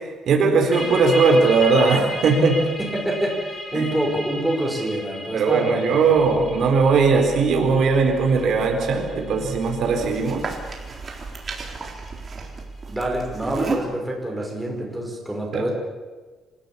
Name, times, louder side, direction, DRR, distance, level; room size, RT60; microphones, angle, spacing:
voice 1, 0.3-2.7 3.7-3.8 5.3-10.5 15.5-15.6, right 4 dB, 60° right, 3 dB, 4.2 m, -19 dB
sound 1, 0.7-12.1, left 1 dB, 25° left, 4.4 m, -35 dB
voice 2, 2.8-3.4 3.7-6.0 12.9-15.7, right 1 dB, 5° right, -1 dB, 5.3 m, -26 dB
sound 2, 6.1-13.8, right 4 dB, 30° right, 3.9 m, -35 dB
27.0 x 16.0 x 8.7 m, 1.3 s
cardioid pair, 150°, 0 cm